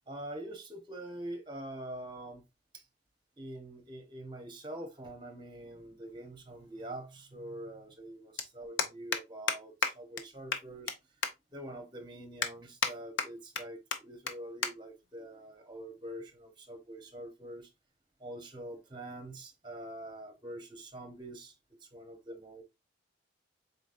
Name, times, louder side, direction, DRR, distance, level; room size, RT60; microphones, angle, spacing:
voice 1, 0.1-2.4 2.7-2.8 3.4-11.0 11.5-17.7 18.2-21.5 21.8-22.6, right 1 dB, 25° right, 0.9 m, -45 dB
sound 1, 6.1-6.2 7.6-7.7 7.9-8.1 8.4-8.5 8.8-9.2 9.5-9.6 9.8-9.9 10.2-10.3 10.5-10.9 11.2-11.3 11.8-11.9 12.4-12.9 13.2-13.6 13.9-14.0 14.3-14.4 14.6-14.7 15.0-15.3 16.0-16.3, left 5 dB, 75° left, 0.6 m, -31 dB
4.0 x 4.0 x 2.5 m
head